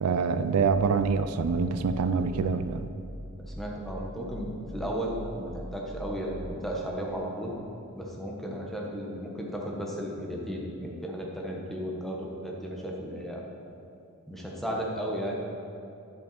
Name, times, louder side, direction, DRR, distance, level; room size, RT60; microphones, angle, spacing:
voice 1, 0.0-2.9, right 5 dB, 90° right, 10 dB, 0.4 m, -25 dB
sound 1, 2.1-6.5, equal, 40° right, 2.2 m, -43 dB
voice 2, 3.4-7.5 7.9-13.4 14.3-15.4, equal, ahead, -2 dB, 1.1 m, -34 dB
10.5 x 6.7 x 4.2 m, 2.6 s
head